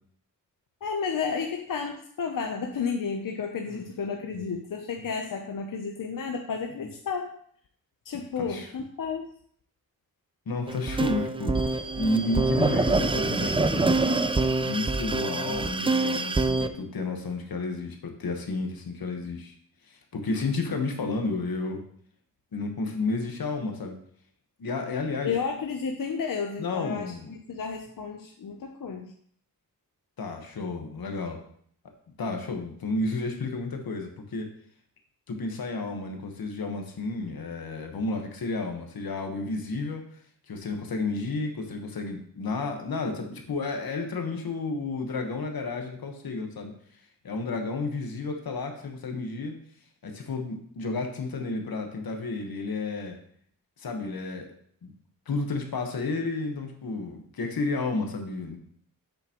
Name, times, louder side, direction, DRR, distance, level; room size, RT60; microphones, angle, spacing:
voice 1, 0.8-7.3 8.1-9.3 25.2-27.1 27.5-29.1, left 5 dB, 65° left, 3 dB, 0.7 m, -32 dB
voice 2, 8.4-8.7 10.5-14.0 14.6-19.5 19.9-21.8 22.5-24.0 24.6-25.3 26.6-27.3 30.2-31.4 32.2-34.5 35.3-40.1 40.5-46.7 47.2-49.6 50.0-53.1 53.8-54.5 54.8-54.9 55.3-58.6, left 3 dB, 85° left, 3 dB, 1.3 m, -31 dB
sound 1, 10.7-16.7, right 3 dB, 15° right, 0.3 m, -25 dB
7.9 x 6.9 x 3.0 m, 0.62 s
wide cardioid pair, 130°, 35 cm